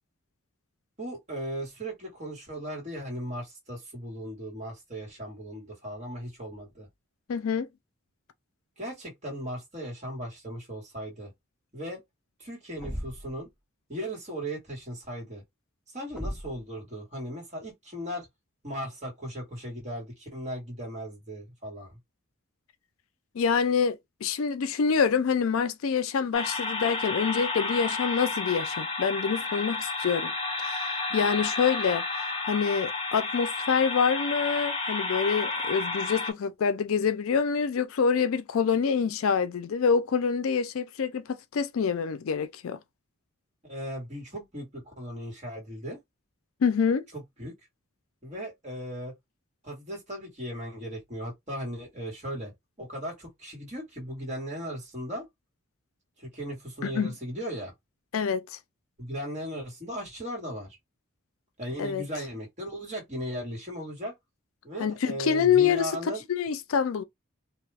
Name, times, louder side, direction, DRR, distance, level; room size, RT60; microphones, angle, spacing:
voice 1, 1.0-6.9 8.8-11.3 11.7-12.0 12.4-13.5 13.9-15.4 15.9-18.3 18.6-22.0 43.6-46.0 47.4-47.5 48.2-49.1 49.6-52.5 52.8-55.2 56.2-57.7 59.0-60.8 61.6-64.1 64.6-66.2, equal, 30° right, 1.6 m, -37 dB
voice 2, 7.3-7.7 23.3-30.3 30.6-32.0 32.4-42.8 46.6-47.0 56.8-57.1 58.1-58.6 61.8-62.0 64.8-65.9 66.3-67.0, left 6 dB, 75° left, 0.4 m, -26 dB
Thump thud, 12.8-13.4 16.1-16.6, equal, 5° right, 0.5 m, -36 dB
sound 1, 26.3-36.3, left 3 dB, 25° left, 0.8 m, -31 dB
2.6 x 2.3 x 3.3 m
head